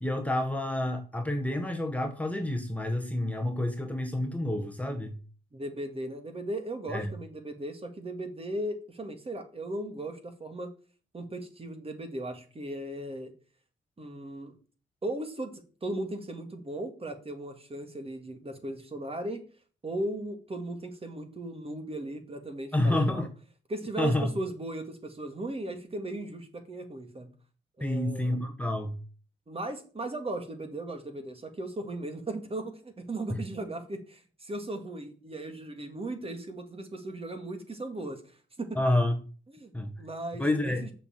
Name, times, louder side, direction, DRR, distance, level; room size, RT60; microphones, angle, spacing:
voice 1, 0.0-5.2 6.9-7.1 22.7-23.3 24.0-24.3 27.8-29.0 38.7-39.2 39.7-39.9 40.4-40.8, left 1 dB, 5° left, 4 dB, 1.3 m, -28 dB
voice 2, 5.5-10.7 11.1-13.3 14.0-14.5 15.0-19.4 19.8-23.3 23.7-27.3 27.8-28.4 29.5-38.8 39.5-39.7 40.0-40.9, right 1 dB, 30° right, 7 dB, 1.9 m, -37 dB
6.8 x 6.8 x 7.5 m, 0.40 s
cardioid pair, 105°, 20 cm